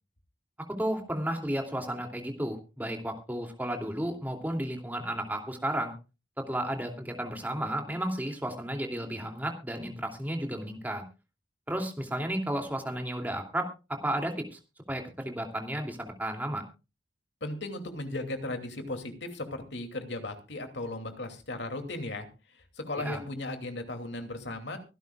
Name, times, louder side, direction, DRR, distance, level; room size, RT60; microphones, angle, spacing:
voice 1, 0.8-5.9 6.4-11.0 11.7-14.6 14.9-16.6 23.0-23.2, right 1 dB, 10° right, 3 dB, 2.8 m, -33 dB
voice 2, 17.4-24.8, left 2 dB, 65° left, 6 dB, 2.8 m, -36 dB
24.5 x 11.5 x 2.4 m, 0.30 s
head